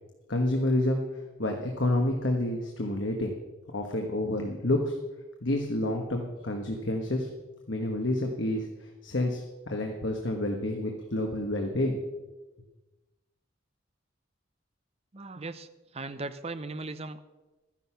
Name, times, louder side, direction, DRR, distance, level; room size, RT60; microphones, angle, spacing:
voice 1, 0.3-1.0 1.4-3.4 3.7-4.9 5.4-7.3 7.7-12.0, left 1 dB, 65° left, 2 dB, 1.5 m, -29 dB
voice 2, 15.1-17.2, right 3 dB, 30° right, 11 dB, 0.7 m, -38 dB
13.0 x 10.5 x 5.8 m, 1.1 s
head